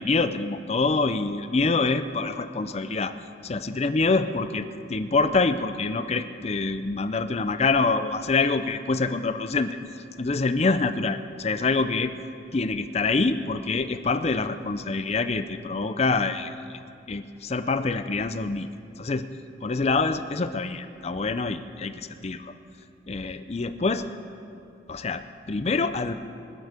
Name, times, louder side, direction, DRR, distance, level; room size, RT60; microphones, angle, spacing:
voice 1, 0.0-3.1 3.4-9.8 10.2-12.1 12.5-16.8 17.1-18.7 19.0-19.3 19.6-22.5 23.1-24.1 24.9-26.1, left 3 dB, 35° left, 11 dB, 0.5 m, -26 dB
23.5 x 8.1 x 5.1 m, 2.6 s
head